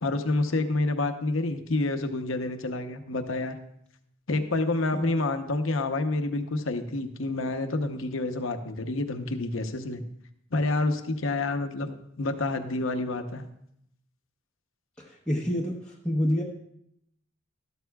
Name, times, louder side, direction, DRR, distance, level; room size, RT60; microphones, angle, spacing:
voice 1, 0.0-3.6 4.3-10.0 10.5-13.4, left 2 dB, 70° left, 7 dB, 0.9 m, -28 dB
voice 2, 15.0-16.4, equal, 5° left, -6 dB, 1.0 m, -28 dB
12.5 x 12.5 x 2.3 m, 0.74 s
head